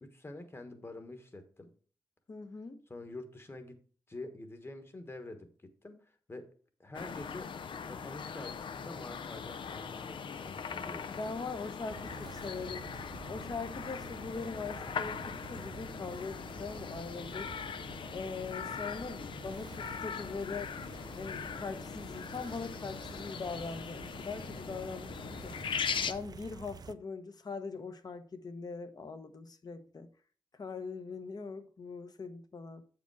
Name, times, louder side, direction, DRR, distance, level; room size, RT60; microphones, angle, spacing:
voice 1, 0.0-1.7 2.9-3.8 4.1-6.5 6.8-7.5 7.8-11.2, left 2 dB, 30° left, 1.3 m, -47 dB
voice 2, 2.3-2.8 11.1-12.8 13.3-17.5 18.1-20.7 21.1-25.6 26.1-30.1 30.5-32.8, left 4 dB, 50° left, 1.0 m, -41 dB
sound 1, 6.9-26.1, left 6 dB, 85° left, 0.5 m, -40 dB
sound 2, 11.9-26.9, right 6 dB, 50° right, 0.4 m, -50 dB
8.2 x 5.1 x 4.7 m
wide cardioid pair, 105°, 8 cm